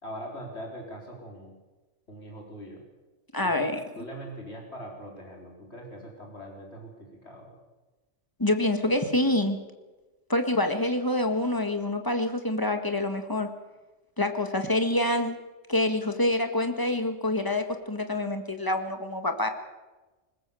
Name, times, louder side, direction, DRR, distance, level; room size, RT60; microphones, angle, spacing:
voice 1, 0.0-1.5 2.1-2.8 3.4-7.5, equal, 60° left, 0 dB, 4.4 m, -42 dB
voice 2, 3.3-3.8 8.4-9.6 10.3-13.5 14.2-15.4 15.7-19.5, left 1 dB, 15° left, 6 dB, 1.7 m, -26 dB
20.5 x 20.0 x 7.1 m, 1.2 s
omnidirectional pair, 1.2 m